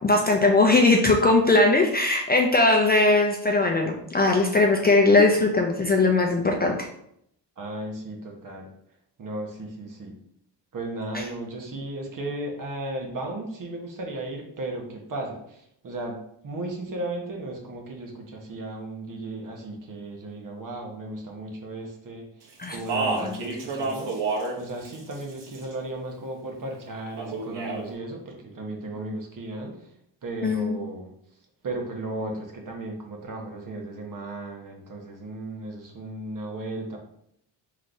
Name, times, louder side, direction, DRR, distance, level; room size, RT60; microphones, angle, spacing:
voice 1, 0.0-6.9 22.6-22.8 30.4-30.8, left 2 dB, 25° left, 1 dB, 0.4 m, -20 dB
voice 2, 7.6-8.7 9.2-10.1 10.7-22.3 22.7-29.8 30.2-31.1 31.6-37.0, right 2 dB, 45° right, 1 dB, 1.1 m, -35 dB
Speech, 22.6-24.6 24.9-25.7 27.2-27.8, right 3 dB, 70° right, 1.3 m, -29 dB
3.8 x 3.2 x 3.8 m, 0.72 s
cardioid pair, 120°, 44 cm